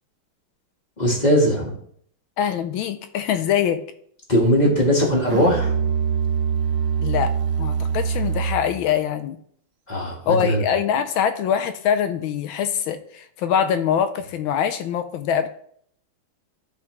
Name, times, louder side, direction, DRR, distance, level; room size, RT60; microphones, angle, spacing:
voice 1, 1.0-1.7 4.3-5.8 9.9-10.6, equal, 20° left, -1 dB, 1.6 m, -19 dB
voice 2, 2.4-3.8 7.0-9.4 10.2-15.5, left 8 dB, 80° left, 10 dB, 1.4 m, -23 dB
Musical instrument, 5.3-8.8, right 7 dB, 85° right, 1.7 m, -23 dB
12.0 x 5.0 x 3.2 m, 0.64 s
omnidirectional pair, 2.3 m